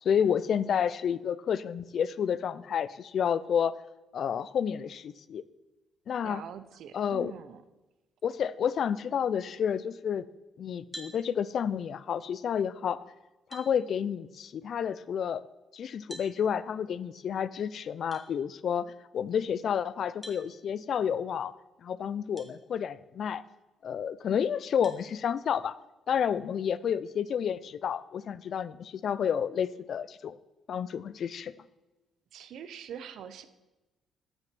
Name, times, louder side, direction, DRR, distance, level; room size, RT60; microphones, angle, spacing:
voice 1, 0.0-3.7 4.1-5.4 6.1-6.4 6.9-7.3 8.2-10.2 10.6-13.0 13.5-15.4 15.7-21.5 21.8-23.4 23.8-25.8 26.1-30.4 30.7-31.5, left 8 dB, 60° left, 17 dB, 0.4 m, -30 dB
voice 2, 6.2-7.6 32.3-33.5, right 8 dB, 75° right, 13 dB, 0.6 m, -44 dB
sound 1, 10.9-11.2 12.9-13.0 13.5-13.7 16.1-16.3 18.1-18.3 20.2-20.4 22.4-22.5 23.2-23.3 24.8-25.0, right 1 dB, 5° right, 1.5 m, -45 dB
7.5 x 6.3 x 6.0 m, 1.1 s
cardioid pair, 90°, 0 cm